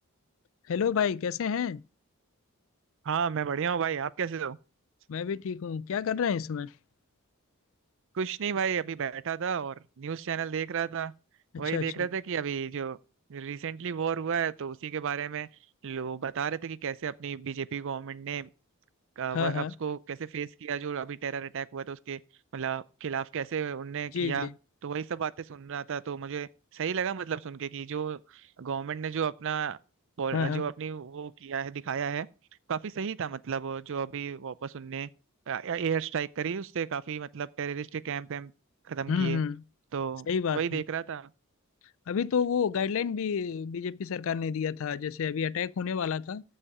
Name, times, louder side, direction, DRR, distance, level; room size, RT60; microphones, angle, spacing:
voice 1, 0.7-1.8 5.1-6.7 11.6-12.1 19.3-19.7 24.1-24.5 30.3-30.6 39.1-39.6 40.3-40.8 42.1-46.4, left 6 dB, 65° left, 0.4 m, -29 dB
voice 2, 3.0-4.6 8.1-11.1 11.6-13.0 13.3-15.5 15.8-18.5 19.2-22.2 22.5-24.5 24.8-29.8 30.2-32.3 32.7-35.1 35.5-38.5 38.8-39.4 39.9-41.3, right 7 dB, 60° right, 0.5 m, -33 dB
14.5 x 5.6 x 4.8 m
head